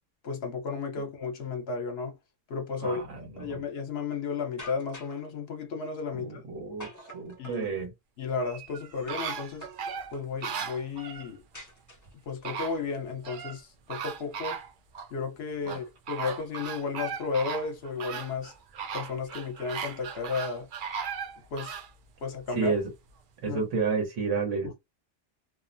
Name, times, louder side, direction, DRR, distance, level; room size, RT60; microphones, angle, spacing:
voice 1, 0.2-2.2 2.5-3.0 3.4-6.4 7.4-7.7 8.2-9.7 10.1-11.4 12.3-14.6 15.1-18.5 18.9-20.7 21.5-21.7 22.2-22.7 23.5-23.6 24.6-24.8, left 4 dB, 60° left, 1.0 m, -33 dB
voice 2, 2.8-3.6 6.1-6.9 7.1-7.9 15.7-15.8 22.5-22.8 23.4-24.7, right 4 dB, 80° right, 1.3 m, -30 dB
sound 1, 4.6-5.2 6.8-7.7 9.1-9.4 9.6-10.3 11.5-12.3, right 1 dB, 20° left, 0.5 m, -45 dB
sound 2, 8.4-11.3 12.1-12.2 12.4-13.6 13.9-15.1 15.7-21.9 22.4-22.5, right 7 dB, 55° right, 0.6 m, -37 dB
2.7 x 2.0 x 2.6 m
omnidirectional pair, 1.3 m